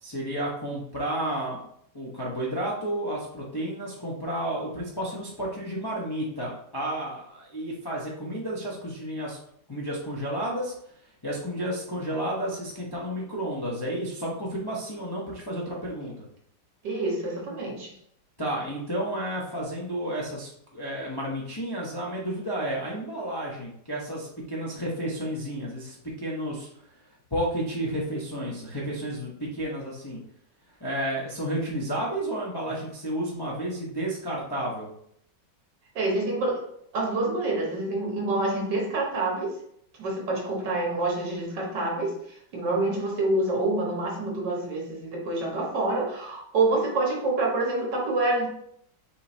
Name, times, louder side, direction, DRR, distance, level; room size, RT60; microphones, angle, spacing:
voice 1, 0.0-1.6 1.9-9.4 9.7-10.7 11.2-16.2 18.4-26.7 27.3-30.2 30.8-34.9, right 1 dB, 25° left, -4 dB, 0.5 m, -31 dB
voice 2, 16.8-17.9 36.0-36.7 36.9-39.5 40.0-42.2 42.5-48.5, right 2 dB, 80° right, -1 dB, 1.9 m, -27 dB
5.5 x 3.2 x 2.7 m, 0.69 s
omnidirectional pair, 1.9 m